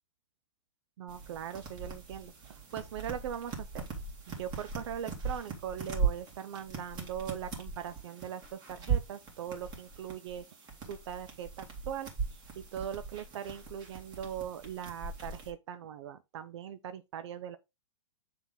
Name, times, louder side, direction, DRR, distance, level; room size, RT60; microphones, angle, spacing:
voice 1, 1.0-3.8 4.3-10.4 10.9-17.6, right 9 dB, 60° right, 0.7 m, -40 dB
sound 1, 1.1-15.5, right 5 dB, 25° right, 2.3 m, -39 dB
7.1 x 3.8 x 3.7 m
hypercardioid pair, 125°, 17 cm